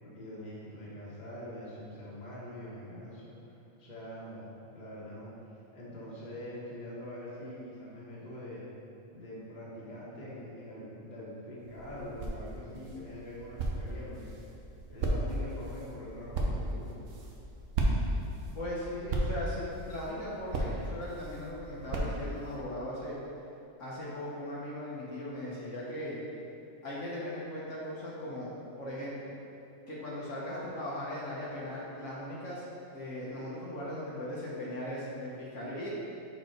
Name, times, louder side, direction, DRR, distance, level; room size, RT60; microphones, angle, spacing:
voice 1, 0.0-5.3 5.7-8.6 9.1-14.3 14.9-16.9, left 1 dB, 35° left, -7 dB, 1.4 m, -44 dB
sound 1, 11.6-22.6, right 1 dB, 70° right, 1.1 m, -35 dB
voice 2, 18.5-23.2 23.8-26.2 26.8-28.5 28.8-29.3 29.9-32.6 32.9-35.9, left 1 dB, 70° left, -7 dB, 1.4 m, -38 dB
6.4 x 4.3 x 4.2 m, 2.8 s
omnidirectional pair, 1.3 m